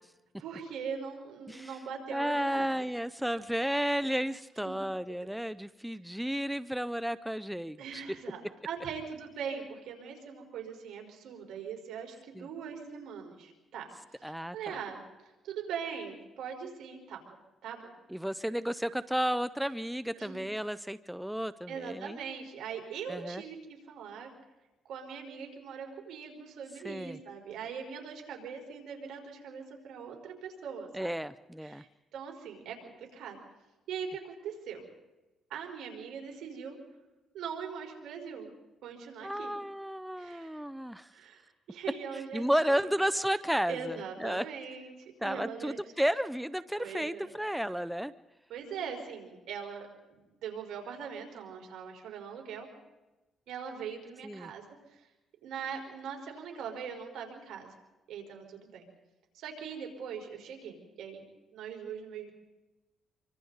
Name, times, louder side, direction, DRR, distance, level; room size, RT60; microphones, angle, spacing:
voice 1, 0.4-2.6 4.6-4.8 7.8-13.9 14.3-15.0 15.4-17.2 17.6-17.9 20.2-20.5 21.7-24.3 24.8-31.1 31.6-31.9 32.1-33.4 33.9-34.8 35.5-36.8 37.3-38.5 38.8-39.5 40.2-40.6 41.1-41.4 41.7-42.4 42.7-42.8 43.7-45.8 46.8-47.3 48.5-52.7 53.5-54.6 54.9-55.0 55.4-57.7 58.1-58.9 59.3-61.2 61.5-62.3, right 6 dB, 80° right, 2 dB, 4.4 m, -41 dB
voice 2, 1.5-1.8 2.1-8.0 12.3-12.5 14.2-14.8 18.1-22.2 23.1-23.4 26.8-27.2 30.9-31.8 39.2-41.1 42.1-44.4 45.2-48.1 54.2-54.5, equal, 5° right, 14 dB, 0.6 m, -32 dB
26.5 x 24.5 x 4.0 m, 1.1 s
cardioid pair, 90°, 0 cm